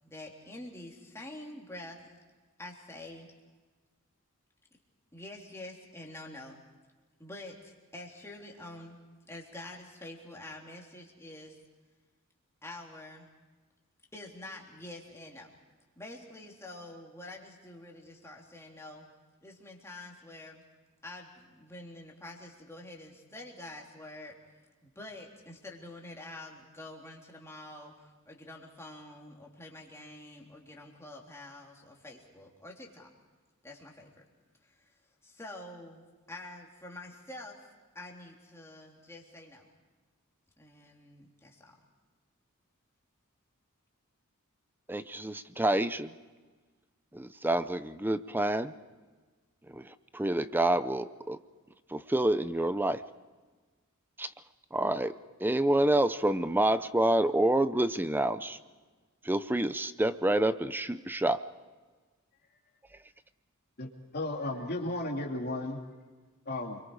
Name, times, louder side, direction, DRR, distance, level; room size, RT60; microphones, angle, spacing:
voice 1, 0.0-2.1 2.6-3.3 5.1-6.6 7.2-9.0 9.3-11.6 12.6-13.3 14.1-15.6 16.0-19.1 19.4-20.6 21.0-24.4 24.8-33.1 33.6-34.1 34.6-34.9 35.2-36.0 36.3-39.7 40.6-41.8, left 1 dB, 10° left, -1 dB, 3.4 m, -47 dB
voice 2, 44.9-46.1 47.1-48.7 49.7-51.4 51.9-53.0 54.2-54.3 54.7-55.1 55.4-58.6 59.2-61.4, right 1 dB, 10° right, 13 dB, 0.6 m, -28 dB
voice 3, 64.1-65.8 66.5-66.8, left 2 dB, 45° left, 2 dB, 2.7 m, -34 dB
29.0 x 23.5 x 4.9 m, 1.3 s
head